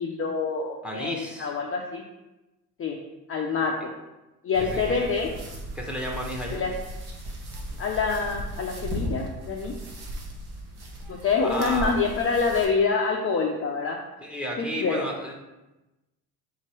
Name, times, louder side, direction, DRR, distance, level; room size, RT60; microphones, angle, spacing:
voice 1, 0.0-2.0 2.8-3.0 3.3-3.9 4.4-5.3 6.5-6.7 7.8-9.7 11.1-14.0 14.6-15.0, left 4 dB, 30° left, 0 dB, 0.5 m, -26 dB
voice 2, 0.8-1.6 4.7-4.8 5.7-6.6 11.4-12.0 14.2-15.3, left 1 dB, ahead, -1 dB, 1.1 m, -32 dB
sound 1, 4.5-12.6, equal, 55° right, 1.2 m, -36 dB
3.9 x 2.9 x 4.4 m, 1.0 s
hypercardioid pair, 55°, 48 cm